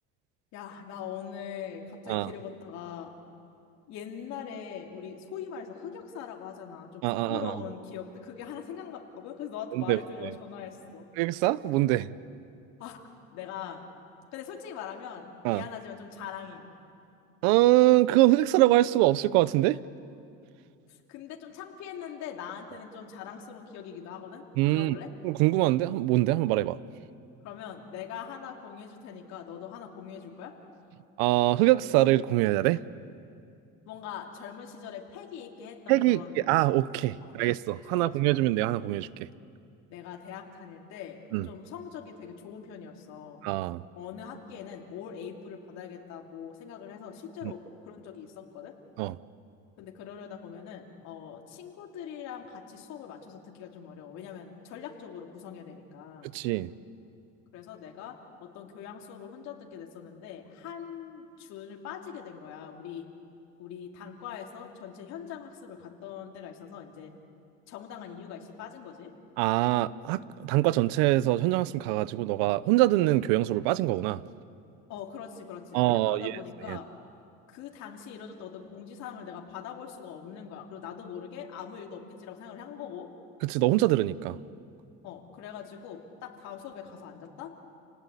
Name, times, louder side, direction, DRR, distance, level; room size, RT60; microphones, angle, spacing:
voice 1, 0.5-3.1 3.9-11.1 12.8-13.0 13.3-13.9 14.3-16.7 20.9-24.4 24.7-25.1 27.4-30.5 33.9-36.5 37.2-37.4 37.9-38.4 39.9-41.2 41.4-43.4 43.9-47.6 47.8-48.8 49.8-56.3 57.5-63.0 63.6-67.1 67.7-69.1 74.9-76.9 77.5-83.1 85.0-87.5, left 8 dB, 65° left, 1 dB, 3.0 m, -42 dB
voice 2, 7.0-7.5 9.7-10.0 11.2-12.1 15.4-15.6 17.4-19.8 24.6-25.0 25.2-26.8 31.2-32.8 35.9-36.2 36.5-39.3 41.3-41.5 43.4-43.8 49.0-49.2 56.3-56.7 69.4-74.2 75.7-76.4 76.7-76.8 83.4-84.4, right 17 dB, 85° right, 18 dB, 0.8 m, -24 dB
29.0 x 19.0 x 8.3 m, 2.5 s
cardioid pair, 130°, 30 cm